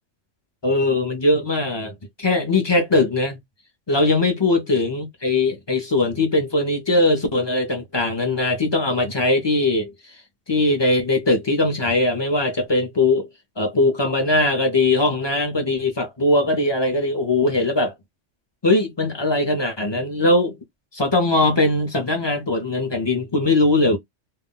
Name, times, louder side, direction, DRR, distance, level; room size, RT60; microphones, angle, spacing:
voice 1, 0.6-3.4 3.9-9.9 10.5-13.3 13.6-17.9 18.6-20.5 20.9-24.0, left 2 dB, 30° left, 0.5 m, -20 dB
2.3 x 2.1 x 3.7 m
omnidirectional pair, 1.2 m